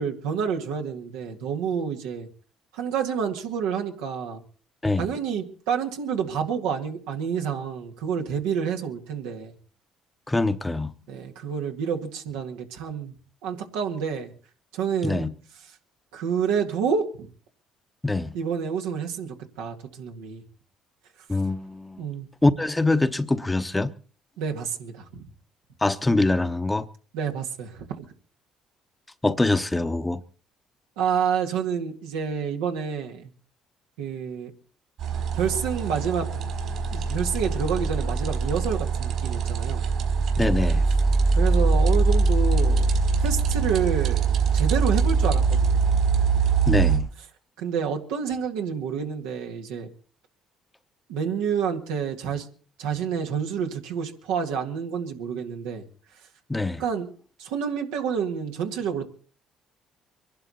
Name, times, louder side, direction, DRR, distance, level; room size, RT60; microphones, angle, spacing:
voice 1, 0.0-2.3 2.7-4.4 5.0-9.5 11.1-13.2 13.4-14.3 14.7-15.3 16.1-17.3 18.3-20.4 22.0-22.3 24.4-25.2 27.1-28.0 31.0-33.3 34.0-34.5 35.3-36.3 36.9-39.8 41.3-44.3 44.5-45.8 47.6-49.9 51.1-52.5 52.8-55.9 56.8-57.1 57.4-59.1, right 7 dB, 85° right, 2.0 m, -28 dB
voice 2, 10.3-10.9 15.0-15.3 18.0-18.3 21.3-22.0 22.4-23.9 25.8-26.9 29.2-30.2 40.4-40.8 46.7-47.1 56.5-56.8, left 2 dB, 15° left, 1.0 m, -24 dB
sound 1, 35.0-47.0, right 4 dB, 70° right, 4.6 m, -22 dB
23.5 x 11.5 x 4.2 m
supercardioid pair, 70°, 0 cm